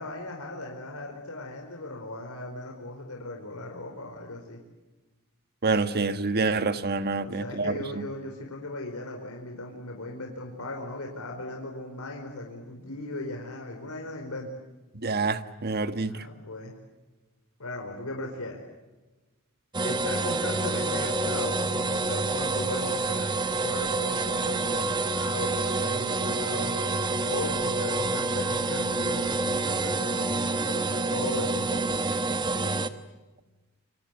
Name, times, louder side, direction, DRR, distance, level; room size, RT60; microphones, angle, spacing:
voice 1, 0.0-4.6 7.1-14.5 15.9-16.7 17.6-18.6 19.8-26.7 27.3-32.2, left 2 dB, 70° left, 4.6 m, -37 dB
voice 2, 5.6-8.0 14.9-16.2, right 3 dB, 45° right, 1.5 m, -27 dB
sound 1, 19.7-32.9, right 3 dB, 20° right, 1.4 m, -28 dB
29.0 x 25.0 x 8.2 m
head